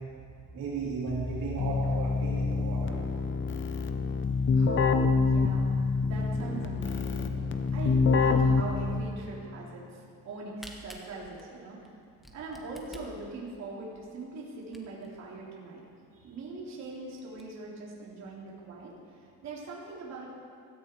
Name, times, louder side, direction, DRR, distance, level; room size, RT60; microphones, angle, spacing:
voice 1, 0.5-3.0, right 4 dB, 65° right, -5 dB, 2.9 m, -35 dB
Keyboard (musical), 1.1-9.4, left 4 dB, 35° left, 0.7 m, -27 dB
voice 2, 4.5-11.9 12.3-15.9 16.2-20.4, right 3 dB, 50° right, -4 dB, 3.2 m, -42 dB
Camera, 10.2-15.2 15.7-15.8 16.0-16.1 16.6-16.7 17.0-17.4, equal, ahead, 1.2 m, -50 dB
16.5 x 14.0 x 4.5 m, 2.4 s
cardioid pair, 165°, 35 cm